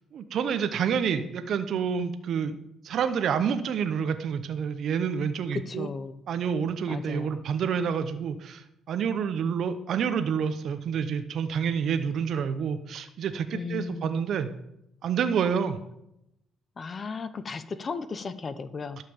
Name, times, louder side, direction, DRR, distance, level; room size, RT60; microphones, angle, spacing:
voice 1, 0.1-2.6 2.8-5.9 6.3-14.5 15.0-15.8, right 7 dB, 60° right, 9 dB, 0.8 m, -28 dB
voice 2, 5.5-6.2 6.9-7.4 13.5-14.2 16.8-19.0, left 4 dB, 35° left, 13 dB, 0.7 m, -35 dB
12.0 x 5.8 x 7.1 m, 0.81 s
cardioid pair, 100°, 0 cm